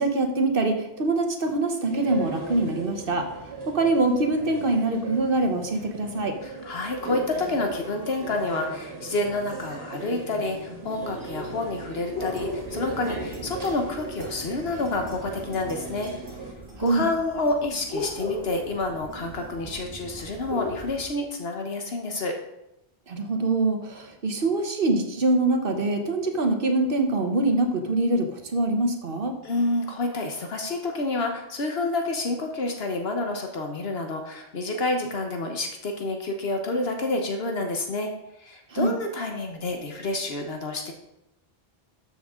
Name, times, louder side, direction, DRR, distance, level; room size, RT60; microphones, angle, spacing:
voice 1, 0.0-3.3 3.7-6.4 16.8-17.0 23.1-29.3 38.7-38.9, right 2 dB, 65° right, 5 dB, 1.4 m, -24 dB
sound 1, 1.9-16.5, right 3 dB, 80° right, 2.0 m, -38 dB
voice 2, 6.4-16.1 16.8-22.3 29.4-38.1 38.4-40.9, left 2 dB, 75° left, 3 dB, 1.3 m, -29 dB
sound 2, 12.1-21.0, left 1 dB, 25° right, 2.2 m, -37 dB
12.5 x 7.1 x 3.7 m, 0.86 s
omnidirectional pair, 1.0 m